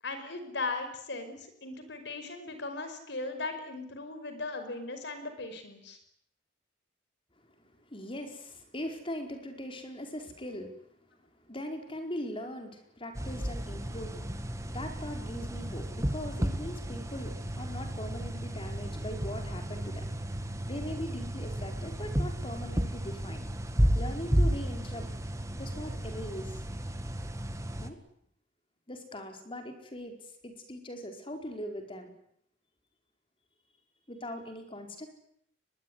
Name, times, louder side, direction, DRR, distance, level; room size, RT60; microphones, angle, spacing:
voice 1, 0.0-6.0, left 3 dB, 65° left, 8 dB, 5.4 m, -38 dB
voice 2, 7.8-10.9 11.4-14.3 14.7-20.1 20.7-23.4 23.9-25.1 25.5-26.5 27.8-28.0 28.9-32.1 34.1-35.1, equal, 30° left, 5 dB, 4.7 m, -40 dB
sound 1, 13.2-27.9, equal, 15° right, 1.9 m, -33 dB
23.5 x 21.5 x 9.8 m, 0.69 s
head